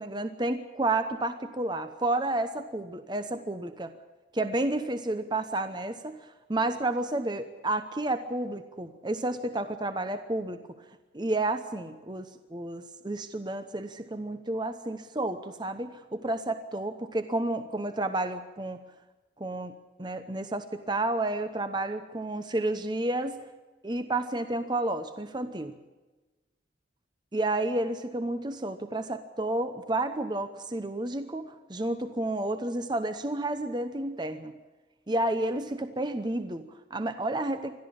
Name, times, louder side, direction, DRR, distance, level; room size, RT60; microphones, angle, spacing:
voice 1, 0.0-3.9 4.3-10.6 11.1-18.8 19.4-19.7 20.0-23.4 23.8-25.8 27.3-34.5 35.1-37.8, right 2 dB, 25° right, 9 dB, 0.9 m, -31 dB
22.0 x 14.0 x 8.7 m, 1.2 s
head